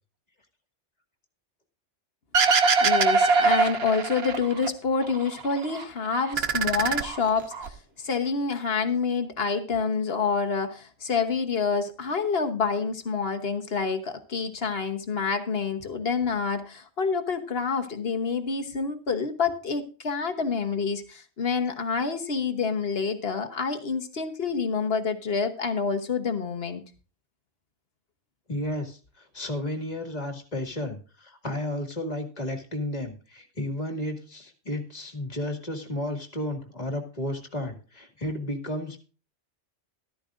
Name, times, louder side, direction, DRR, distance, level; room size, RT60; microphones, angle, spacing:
sound 1, 2.3-4.7 5.0-5.8 6.2-7.7, right 4 dB, 60° right, 1.1 m, -23 dB
voice 1, 2.8-26.8, left 5 dB, 55° left, 6 dB, 1.3 m, -27 dB
voice 2, 28.5-39.0, left 1 dB, 35° left, 4 dB, 2.2 m, -33 dB
13.5 x 13.0 x 2.5 m, 0.36 s
omnidirectional pair, 1.2 m